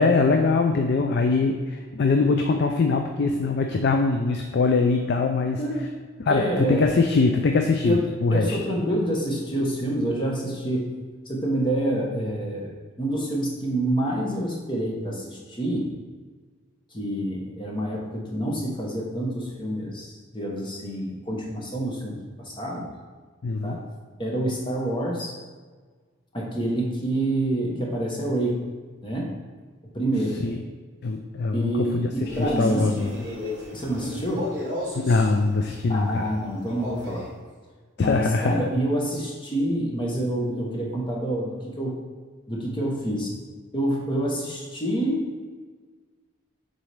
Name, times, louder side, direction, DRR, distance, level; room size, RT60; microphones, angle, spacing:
voice 1, 0.0-5.6 6.2-8.6 23.4-23.8 30.4-30.6 31.0-33.2 34.9-36.2 38.0-38.7, left 3 dB, 50° left, 4 dB, 0.4 m, -22 dB
voice 2, 5.6-5.9 6.3-6.9 7.8-10.9 11.3-12.7 13.0-15.9 16.9-22.9 23.6-23.8 24.2-25.3 26.3-28.6 29.0-29.3 29.9-30.4 31.5-32.9 33.7-34.5 35.9-37.2 38.0-42.0 42.5-43.3 43.7-45.3, right 1 dB, 25° left, -2 dB, 1.0 m, -27 dB
Male speech man speaking, 32.2-35.3 36.7-37.3, left 1 dB, 20° right, 1.8 m, -33 dB
7.0 x 4.0 x 3.4 m, 1.5 s
head